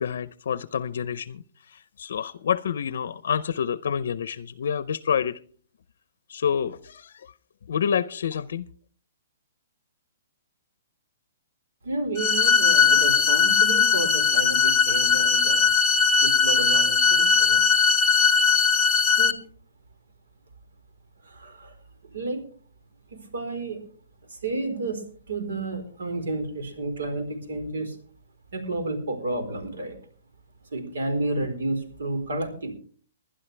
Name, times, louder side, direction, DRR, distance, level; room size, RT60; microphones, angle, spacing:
voice 1, 0.0-5.4 6.3-7.3 7.7-8.7, left 7 dB, 55° left, 16 dB, 0.6 m, -28 dB
voice 2, 11.8-15.7 16.2-17.7 19.0-19.4 21.2-21.7 22.0-22.4 23.1-23.8 24.3-25.0 25.3-28.0 28.5-30.0 30.7-32.7, right 2 dB, 90° right, 6 dB, 4.3 m, -31 dB
sound 1, 12.2-19.3, left 6 dB, 10° left, 0.7 m, -19 dB
21.0 x 11.5 x 3.4 m, 0.43 s
hypercardioid pair, 180°, 0 cm